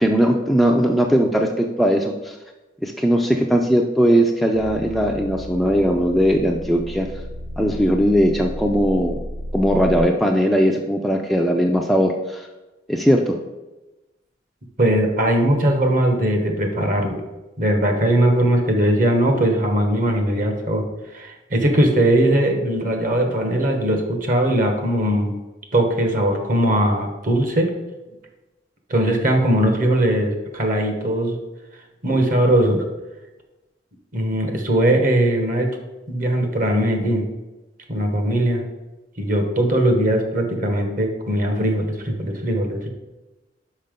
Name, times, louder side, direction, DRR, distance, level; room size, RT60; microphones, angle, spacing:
voice 1, 0.0-2.4 2.8-7.1 7.6-9.2 9.5-12.5 12.9-13.4, equal, ahead, 1 dB, 0.4 m, -19 dB
sound 1, 4.5-10.0, equal, 70° right, 2.2 m, -33 dB
voice 2, 14.8-17.2 17.6-20.8 21.1-25.3 25.7-27.7 28.9-31.4 32.0-32.8 34.1-35.7 36.1-37.2 37.9-38.6 39.2-42.9, right 1 dB, 45° right, 4 dB, 1.2 m, -20 dB
5.6 x 5.5 x 5.2 m, 1.1 s
head